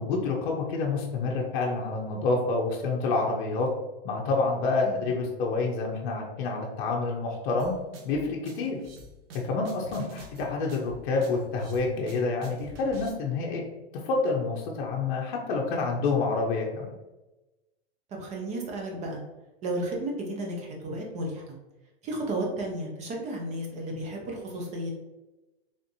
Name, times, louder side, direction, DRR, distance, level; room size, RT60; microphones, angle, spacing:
voice 1, 0.0-3.7 4.0-7.7 8.0-8.8 9.3-13.6 13.9-16.9, left 3 dB, 55° left, -1 dB, 0.7 m, -28 dB
sound 1, 7.6-13.1, right 1 dB, 70° right, 0.8 m, -47 dB
voice 2, 18.1-19.2 19.6-21.6 22.0-24.9, right 1 dB, 25° right, 1 dB, 0.7 m, -33 dB
3.5 x 2.5 x 2.6 m, 1.0 s
hypercardioid pair, 140°, 30 cm